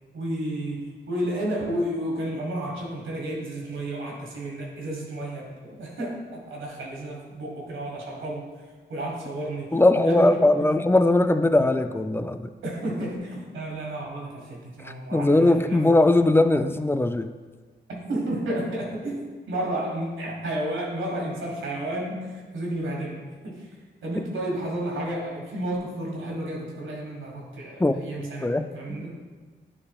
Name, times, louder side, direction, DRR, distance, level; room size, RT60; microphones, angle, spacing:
voice 1, 0.1-8.5 8.9-10.3 10.6-10.7 12.6-15.8 18.1-23.7 24.0-29.2, right 1 dB, 90° right, -2 dB, 1.6 m, -32 dB
voice 2, 9.7-12.5 14.8-17.3 27.8-29.1, left 2 dB, 10° left, 10 dB, 0.4 m, -20 dB
9.7 x 4.8 x 2.3 m, 1.4 s
cardioid pair, 55°, 20 cm